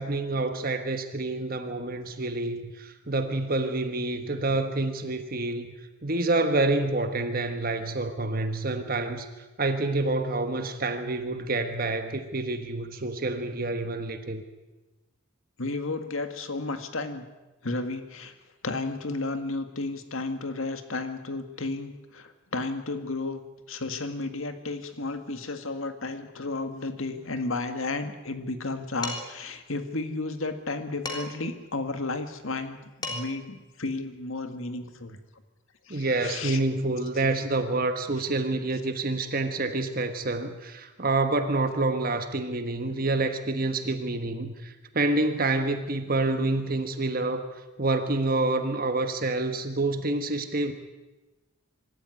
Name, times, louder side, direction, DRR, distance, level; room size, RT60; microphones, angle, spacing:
voice 1, 0.0-5.7 6.0-14.4 35.9-47.5 47.8-50.7, right 2 dB, 40° right, 8 dB, 1.3 m, -28 dB
voice 2, 15.6-17.3 17.6-18.3 18.6-23.4 23.7-35.2 35.9-36.6 37.2-37.3, left 3 dB, 70° left, 8 dB, 1.9 m, -33 dB
Dishes pots and pans, 29.0-29.5 31.1-31.5 32.7-32.8 33.0-33.5, left 2 dB, 20° left, 3.4 m, -35 dB
25.0 x 13.0 x 9.7 m, 1.1 s
head